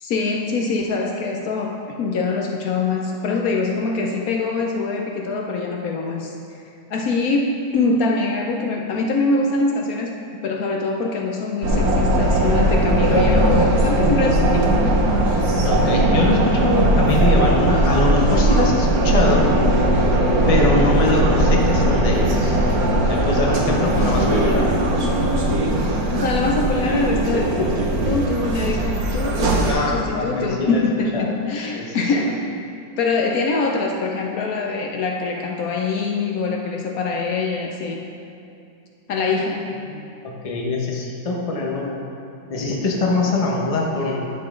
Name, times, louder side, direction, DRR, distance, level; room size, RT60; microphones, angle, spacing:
voice 1, 0.0-6.3 6.9-10.2 10.4-14.8 25.8-32.5 33.0-38.0 39.1-39.8, left 3 dB, 70° left, 1 dB, 0.9 m, -24 dB
sound 1, 11.6-29.7, right 1 dB, 55° right, 1.3 m, -19 dB
voice 2, 15.6-19.5 20.5-22.6 23.0-24.7 29.6-30.8 31.1-31.4 31.7-32.0 39.8-42.0 42.5-44.3, left 2 dB, 30° left, -1 dB, 0.6 m, -23 dB
10.5 x 5.9 x 3.7 m, 2.6 s
omnidirectional pair, 2.0 m